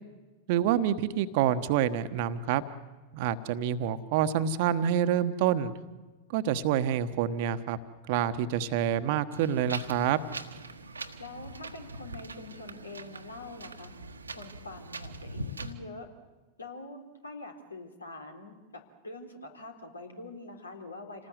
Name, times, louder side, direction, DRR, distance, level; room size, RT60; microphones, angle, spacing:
voice 1, 0.5-2.6 3.1-5.7 6.3-7.8 8.1-10.2, right 9 dB, 50° right, 12 dB, 1.3 m, -27 dB
Wind, 9.3-15.7, right 2 dB, 80° right, 1.5 m, -42 dB
voice 2, 11.2-13.9 14.3-16.1 16.6-21.3, left 2 dB, 80° left, 3 dB, 3.8 m, -45 dB
28.0 x 19.0 x 8.1 m, 1.2 s
figure-of-eight pair, 90°, 0 cm